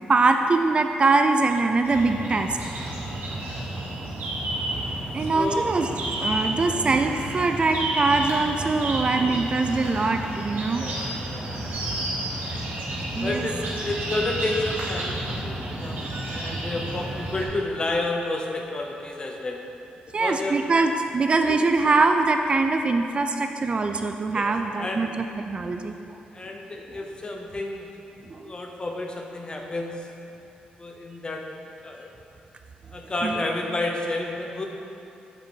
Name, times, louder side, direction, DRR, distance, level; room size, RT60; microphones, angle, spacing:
voice 1, 0.1-2.6 4.7-4.9 5.1-5.9 6.2-10.8 13.1-13.5 16.5-16.6 20.1-25.1 25.5-25.9 28.3-28.5 33.2-33.4, right 3 dB, 35° right, 5 dB, 0.3 m, -23 dB
sound 1, 1.8-17.5, right 1 dB, 90° right, 1.3 m, -31 dB
voice 2, 5.3-5.7 6.6-6.8 10.7-11.6 13.2-19.6 20.2-20.6 21.4-21.6 24.3-25.0 26.3-27.9 28.4-30.1 30.8-32.1 32.9-34.7, left 2 dB, 30° left, 2 dB, 0.8 m, -31 dB
7.2 x 3.9 x 5.5 m, 2.9 s
cardioid pair, 105°, 3 cm